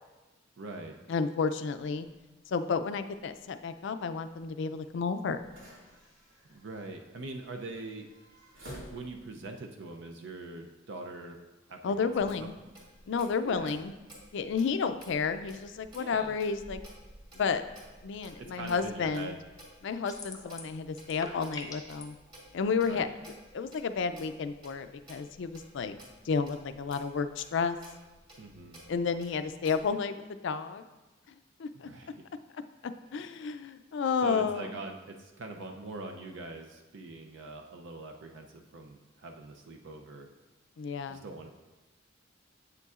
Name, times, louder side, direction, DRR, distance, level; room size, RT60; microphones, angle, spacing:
voice 1, 0.6-1.0 6.5-8.1 8.9-11.4 11.7-12.1 12.4-12.5 13.4-13.8 15.9-16.4 18.4-19.4 22.9-23.2 28.4-28.8 31.7-32.2 34.2-40.3 41.1-41.5, right 2 dB, 65° right, 3 dB, 0.5 m, -43 dB
voice 2, 1.1-2.1 2.5-5.4 11.8-12.5 13.1-13.9 14.3-16.8 17.4-17.6 18.0-19.4 19.8-22.2 22.5-23.1 23.5-26.0 26.2-27.8 28.9-30.8 31.6-31.9 33.1-34.7 40.8-41.2, left 5 dB, 65° left, 11 dB, 0.4 m, -31 dB
sound 1, 2.1-9.5, equal, 90° right, 2.1 m, -53 dB
Clock, 12.1-29.9, right 1 dB, 25° right, 2.2 m, -54 dB
sound 2, 20.1-20.8 21.0-22.0, left 3 dB, 20° left, 0.7 m, -43 dB
8.2 x 6.7 x 2.4 m, 1.1 s
head